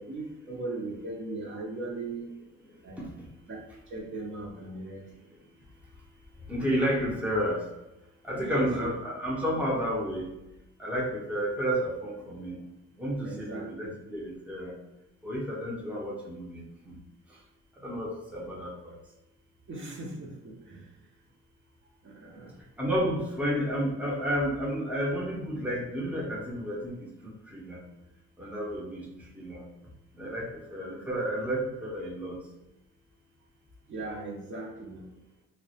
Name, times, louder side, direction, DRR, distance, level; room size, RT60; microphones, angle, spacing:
voice 1, 0.0-2.3 2.8-3.0 3.9-5.0 8.4-8.9 13.2-14.0 19.7-20.9 22.0-22.6 33.9-35.0, right 3 dB, 40° right, -3 dB, 0.6 m, -38 dB
voice 2, 6.5-7.6 8.2-10.3 10.8-12.6 13.0-14.7 15.2-16.9 17.8-18.9 22.8-27.1 27.5-27.8 28.4-29.1 29.3-29.6 30.2-32.4, equal, 5° right, -4 dB, 0.6 m, -31 dB
2.1 x 2.1 x 2.7 m, 0.95 s
cardioid pair, 90°, 30 cm